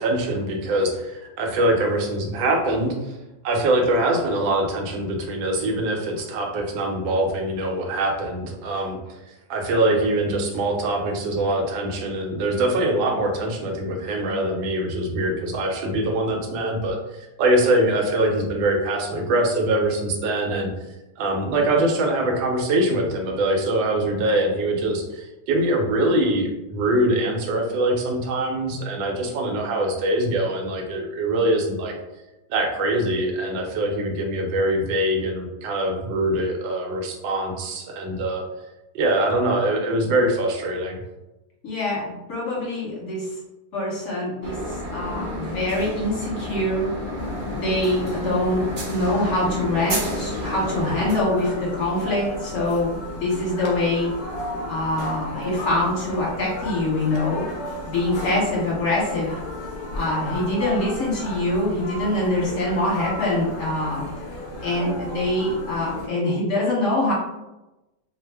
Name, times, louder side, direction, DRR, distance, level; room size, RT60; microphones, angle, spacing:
voice 1, 0.0-3.1 3.4-20.7 21.2-32.0 32.5-38.4 38.9-41.0, right 1 dB, 90° right, 2 dB, 1.4 m, -23 dB
voice 2, 41.6-43.3 43.7-46.9 47.5-54.1 54.7-57.5 57.8-59.3 59.9-64.0 64.6-67.1, left 1 dB, 45° left, -6 dB, 1.3 m, -24 dB
sound 1, 44.4-51.2, equal, 60° right, 0.6 m, -31 dB
sound 2, 47.2-66.1, left 1 dB, 60° left, 0.7 m, -34 dB
3.1 x 2.0 x 3.3 m, 1.0 s
omnidirectional pair, 2.0 m